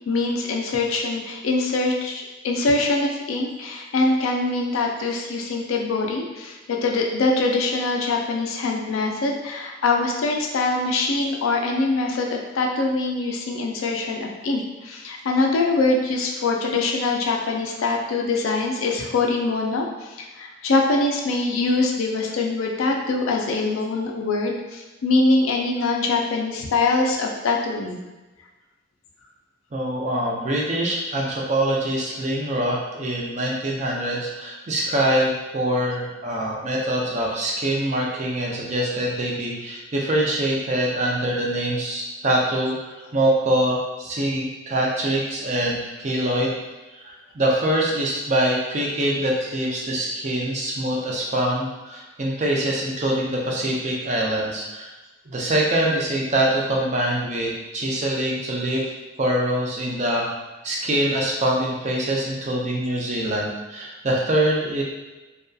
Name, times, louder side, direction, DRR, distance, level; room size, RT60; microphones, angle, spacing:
voice 1, 0.1-28.0, left 3 dB, 80° left, 1 dB, 0.4 m, -23 dB
voice 2, 29.7-46.5 47.0-54.9 55.3-58.8 59.2-60.3 60.6-64.8, right 1 dB, 35° right, -3 dB, 0.4 m, -24 dB
2.6 x 2.3 x 2.2 m, 1.1 s
head